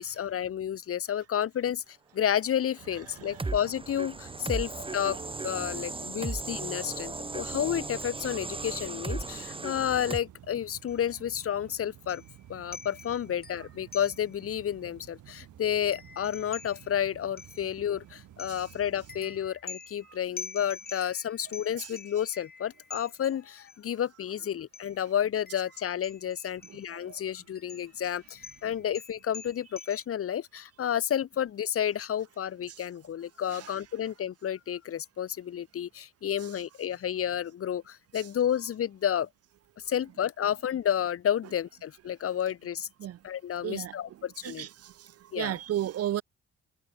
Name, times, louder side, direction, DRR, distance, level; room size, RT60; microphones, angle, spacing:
voice 1, 0.0-5.2 5.4-12.2 12.5-39.3 39.9-42.9 43.2-44.7 45.3-45.6, left 9 dB, 50° left, 0.9 m, -31 dB
sound 1, 2.8-19.5, right 12 dB, 75° right, 7.4 m, -52 dB
sound 2, 2.9-10.2, right 3 dB, 15° right, 1.7 m, -36 dB
sound 3, 10.9-11.1 11.4-11.5 12.1-12.4 12.7-14.5 14.9-15.0 15.2-18.0 18.4-23.8 24.7-25.0 25.5-27.0 27.6-30.0, left 4 dB, 30° left, 6.1 m, -46 dB
voice 2, 43.6-43.9 44.4-44.9 45.4-46.2, right 12 dB, 55° right, 0.6 m, -33 dB
cardioid pair, 90°, 30 cm